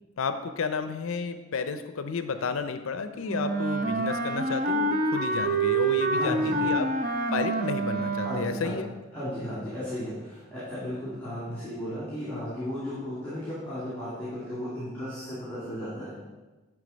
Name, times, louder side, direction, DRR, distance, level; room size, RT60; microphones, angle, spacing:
voice 1, 0.2-6.9 7.3-8.9, left 5 dB, 70° left, 9 dB, 0.5 m, -32 dB
Wind instrument woodwind instrument, 3.3-8.7, right 3 dB, 40° right, 0.5 m, -27 dB
voice 2, 6.1-6.7 8.2-8.8 9.1-16.1, equal, 10° left, -11 dB, 2.3 m, -35 dB
10.0 x 3.5 x 5.1 m, 1.2 s
head